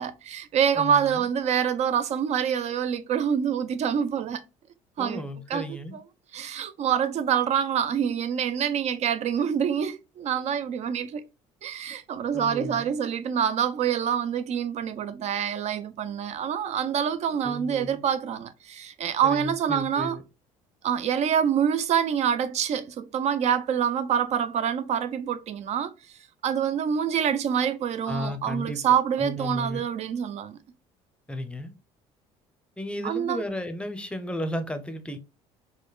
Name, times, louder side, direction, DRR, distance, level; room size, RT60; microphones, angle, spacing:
voice 1, 0.0-4.4 5.0-5.2 5.5-5.8 6.3-11.2 11.6-20.2 20.8-25.9 26.4-30.6 33.0-33.4, right 8 dB, 50° right, 0.5 m, -26 dB
voice 2, 0.7-1.3 5.0-6.0 12.3-12.9 17.4-18.0 19.2-20.2 28.1-28.8 29.2-29.8 31.3-31.7 32.8-35.2, left 1 dB, 5° left, 0.6 m, -34 dB
5.0 x 2.1 x 2.3 m
supercardioid pair, 80°, 14 cm